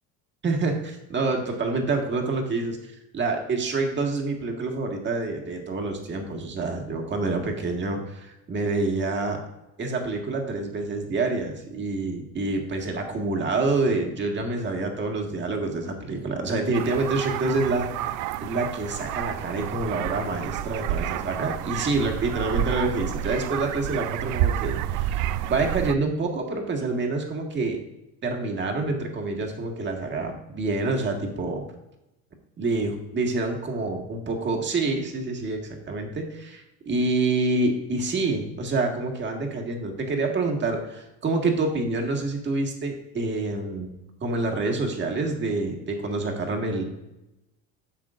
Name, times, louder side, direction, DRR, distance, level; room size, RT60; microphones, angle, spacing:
voice 1, 0.4-9.4 9.8-17.9 18.4-27.8 28.2-31.6 32.6-35.6 35.9-43.9 44.2-46.8, right 3 dB, 35° right, 2 dB, 1.8 m, -27 dB
sound 1, 16.7-25.9, right 12 dB, 65° right, 0.4 m, -29 dB
10.5 x 7.1 x 2.5 m, 0.93 s
cardioid pair, 120°, 32 cm